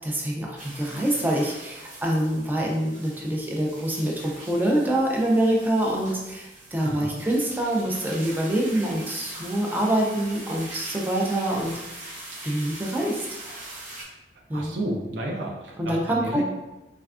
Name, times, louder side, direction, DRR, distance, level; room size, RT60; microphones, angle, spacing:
voice 1, 0.0-12.1 12.4-13.2 14.5-14.9 15.8-16.4, right 1 dB, 10° right, -2 dB, 0.4 m, -25 dB
sound 1, 0.6-14.0, right 1 dB, 45° right, 0.9 m, -42 dB
voice 2, 6.8-7.3 11.6-11.7 14.5-16.4, right 1 dB, 75° right, 0 dB, 0.4 m, -32 dB
3.3 x 2.2 x 2.4 m, 1.0 s
head